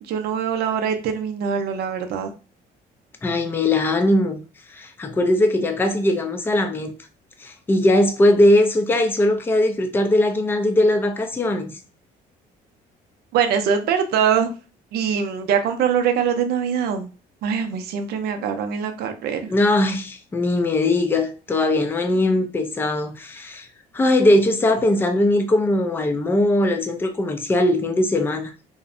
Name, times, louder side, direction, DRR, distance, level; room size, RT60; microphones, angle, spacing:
voice 1, 0.0-2.3 13.3-14.5 14.9-17.1 17.4-19.6, right 7 dB, 70° right, 0.5 m, -23 dB
voice 2, 3.2-4.4 4.7-6.9 7.4-11.8 19.5-23.7 23.9-28.5, left 1 dB, 15° left, 0.4 m, -20 dB
2.6 x 2.1 x 2.5 m
cardioid pair, 110°, 17 cm